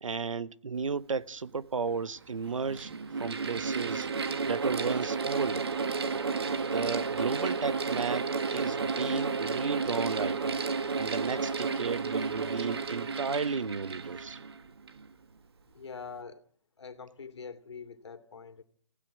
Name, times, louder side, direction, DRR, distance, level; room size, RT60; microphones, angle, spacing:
voice 1, 0.0-2.9 3.2-4.1 4.5-5.7 6.6-10.6 11.0-14.4, right 5 dB, 90° right, 1.1 m, -33 dB
Mechanical fan, 1.4-1.5 2.4-15.1, right 4 dB, 55° right, 1.8 m, -32 dB
voice 2, 15.7-16.4 16.8-18.6, left 5 dB, 60° left, 2.8 m, -44 dB
27.5 x 16.0 x 9.3 m
hypercardioid pair, 175°, 16 cm